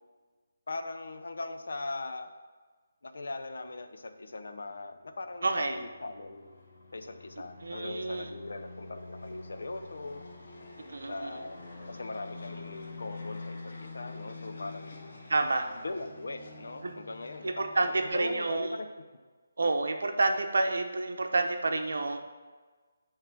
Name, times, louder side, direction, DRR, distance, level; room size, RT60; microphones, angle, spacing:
voice 1, 0.7-2.3 3.0-6.5 6.9-10.2 11.1-11.6 11.9-15.0 15.8-18.9, left 2 dB, 70° left, 8 dB, 0.7 m, -40 dB
sound 1, 4.8-18.2, left 3 dB, 45° left, 1.1 m, -46 dB
voice 2, 5.4-5.8 7.6-8.3 10.9-11.4 15.3-15.7 16.8-16.9 17.4-18.8 19.6-22.2, right 3 dB, 70° right, 5 dB, 0.8 m, -29 dB
9.1 x 3.3 x 5.9 m, 1.4 s
hypercardioid pair, 180°, 0 cm